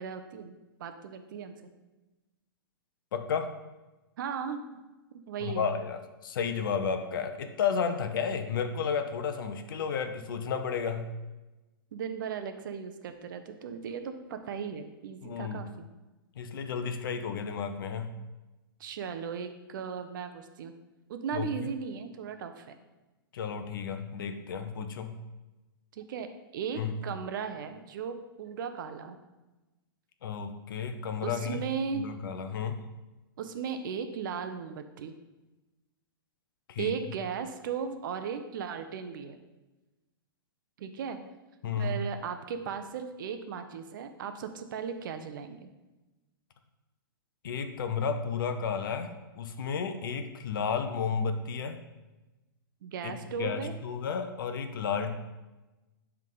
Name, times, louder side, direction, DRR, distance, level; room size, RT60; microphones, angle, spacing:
voice 1, 0.0-1.5 4.2-4.8 5.1-5.7 11.9-15.9 18.8-20.7 21.1-22.8 25.9-26.3 26.5-29.2 31.2-32.1 33.4-35.1 36.8-39.4 40.8-41.2 41.8-45.7 52.8-53.7, right 6 dB, 60° right, 8 dB, 0.7 m, -36 dB
voice 2, 3.1-3.5 5.4-11.1 15.2-15.6 16.4-18.1 21.3-21.5 23.3-25.1 26.8-26.9 30.2-31.6 31.9-32.8 36.7-36.9 41.6-41.9 47.4-51.8 53.0-55.2, left 6 dB, 65° left, 8 dB, 0.8 m, -32 dB
10.5 x 3.6 x 3.8 m, 1.1 s
hypercardioid pair, 125°, 12 cm